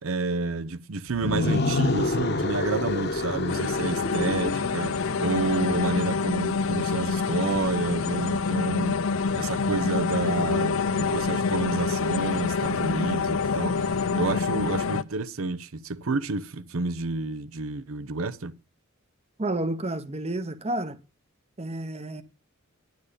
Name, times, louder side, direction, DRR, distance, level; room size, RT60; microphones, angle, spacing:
voice 1, 0.0-9.1 9.3-18.5, right 3 dB, 75° right, 0.7 m, -29 dB
sound 1, 1.1-6.1, left 2 dB, 50° left, 1.2 m, -28 dB
sound 2, 3.5-15.0, left 5 dB, 70° left, 0.6 m, -27 dB
voice 2, 19.4-21.0 21.6-22.2, right 1 dB, 30° right, 0.8 m, -30 dB
9.9 x 9.3 x 5.1 m
head